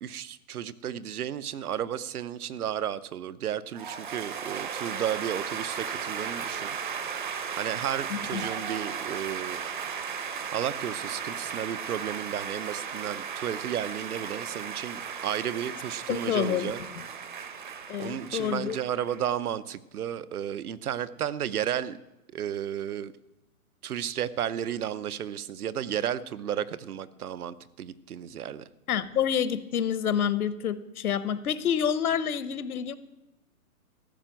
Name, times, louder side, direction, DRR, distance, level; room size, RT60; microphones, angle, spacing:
voice 1, 0.0-6.8 7.6-9.6 10.5-16.8 18.0-22.0 22.3-23.1 23.8-28.6, right 10 dB, 75° right, 16 dB, 0.8 m, -33 dB
sound 1, 3.7-19.3, right 7 dB, 35° right, 0.8 m, -36 dB
voice 2, 8.1-8.4 16.1-17.1 17.9-18.8 28.9-33.0, left 8 dB, 70° left, 16 dB, 1.0 m, -28 dB
14.0 x 6.0 x 8.9 m, 0.95 s
hypercardioid pair, 175°, 45 cm